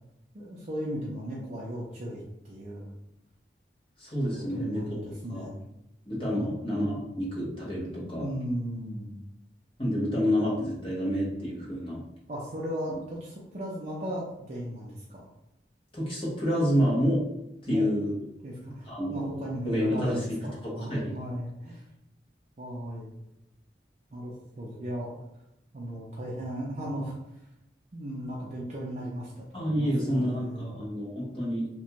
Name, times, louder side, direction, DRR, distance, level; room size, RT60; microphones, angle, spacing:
voice 1, 0.3-2.9 4.4-5.6 6.3-6.5 7.9-9.2 12.3-15.3 17.7-17.9 18.4-21.9 22.6-23.1 24.1-25.2 25.7-27.2 27.9-30.8, equal, 40° right, -6 dB, 0.4 m, -36 dB
voice 2, 4.0-4.8 5.3-5.4 6.1-8.3 9.8-12.0 15.9-17.2 17.6-18.1 18.6-20.2 20.6-21.1 29.5-31.7, equal, 30° left, -5 dB, 0.8 m, -28 dB
2.5 x 2.2 x 2.9 m, 0.85 s
head